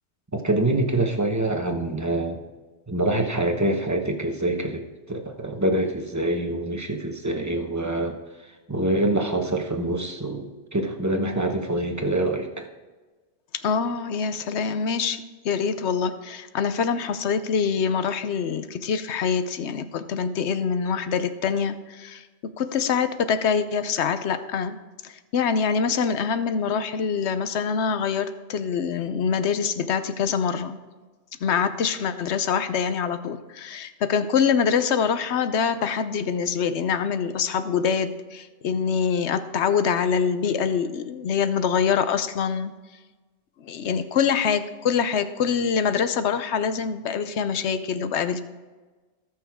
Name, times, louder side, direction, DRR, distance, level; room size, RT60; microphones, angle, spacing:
voice 1, 0.3-2.4 2.9-4.8 5.1-8.2 8.7-12.7, right 1 dB, 15° right, 4 dB, 1.0 m, -25 dB
voice 2, 13.6-22.2 22.6-24.8 25.0-30.8 31.4-42.7 43.6-48.4, left 6 dB, 75° left, 11 dB, 1.0 m, -25 dB
18.5 x 6.2 x 3.6 m, 1.3 s
omnidirectional pair, 1.2 m